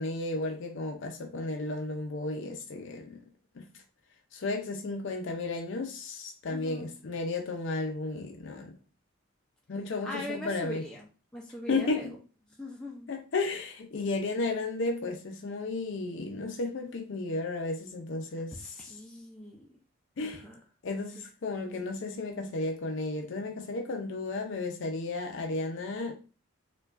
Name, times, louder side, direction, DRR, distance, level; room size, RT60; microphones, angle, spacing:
voice 1, 0.0-3.2 3.6-3.7 4.3-8.7 9.7-10.8 11.7-12.1 13.1-18.8 20.2-20.4 20.8-26.1, left 3 dB, 65° left, 0.4 m, -33 dB
voice 2, 6.5-7.0 10.0-11.1 11.3-12.2 12.6-13.1 18.5-19.7 20.2-20.6, left 1 dB, 5° left, 0.4 m, -41 dB
4.5 x 2.3 x 2.4 m
head